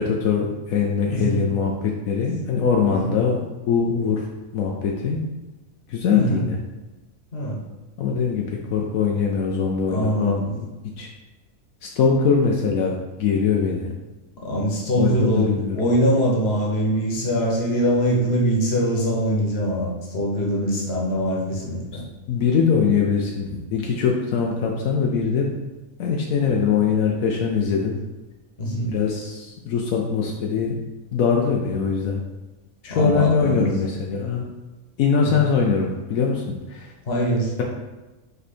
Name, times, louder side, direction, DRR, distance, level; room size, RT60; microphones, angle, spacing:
voice 1, 0.0-3.4 3.7-4.3 4.5-5.2 5.9-6.6 8.0-10.7 11.0-11.1 11.8-12.9 13.2-13.9 14.9-15.9 21.9-22.0 22.3-25.5 26.0-28.0 28.9-30.8 31.1-32.2 32.8-34.4 35.0-36.9, left 6 dB, 80° left, 0 dB, 1.1 m, -22 dB
voice 2, 1.1-1.5 2.9-3.0 6.1-6.5 7.3-7.6 9.9-10.5 14.4-22.0 28.6-28.9 32.9-33.7 35.2-35.3 37.1-37.6, equal, 50° left, -2 dB, 1.5 m, -23 dB
5.4 x 4.5 x 4.2 m, 1.1 s
omnidirectional pair, 1.5 m